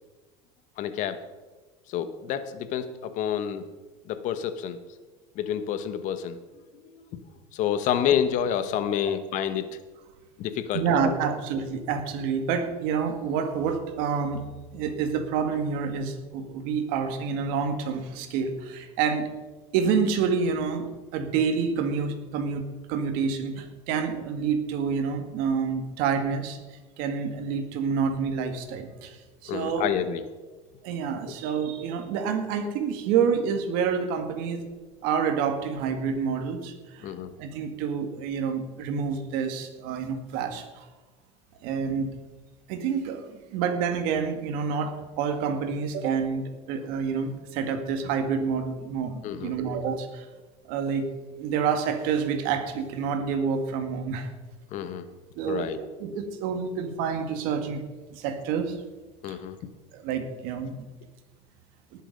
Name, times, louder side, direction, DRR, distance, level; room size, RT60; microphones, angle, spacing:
voice 1, 0.8-1.2 1.9-3.7 4.0-4.8 5.3-6.4 6.7-7.2 7.5-9.6 10.4-11.1 29.5-30.2 37.0-37.3 49.2-49.6 54.7-55.0 55.4-55.8 59.2-59.6, left 9 dB, 55° left, 11 dB, 1.2 m, -29 dB
voice 2, 10.7-14.4 14.7-19.3 19.7-20.9 21.1-29.9 30.8-34.7 35.0-40.9 41.6-42.1 42.7-50.3 50.6-51.1 51.4-54.3 55.4-57.8 58.1-58.8 59.3-59.4 59.9-60.9, right 6 dB, 70° right, 7 dB, 2.0 m, -28 dB
19.0 x 7.3 x 5.4 m, 1.2 s
supercardioid pair, 125°, 15 cm